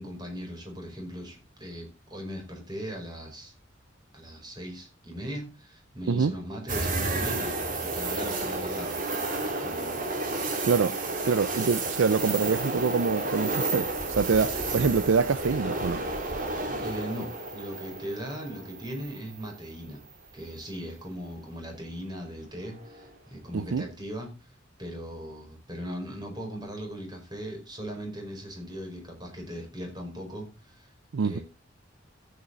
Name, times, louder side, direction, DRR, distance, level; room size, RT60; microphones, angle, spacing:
voice 1, 0.0-3.5 4.1-9.0 9.5-10.0 16.8-20.0 20.3-24.3 24.8-30.9 31.2-31.4, equal, 20° right, 5.1 m, -39 dB
sound 1, 6.7-19.7 20.1-20.2 22.6-23.1, right 2 dB, 45° right, 2.9 m, -31 dB
voice 2, 10.6-11.0 11.2-16.0 23.5-23.8 31.1-31.4, right 5 dB, 75° right, 0.5 m, -25 dB
14.0 x 8.7 x 3.9 m
head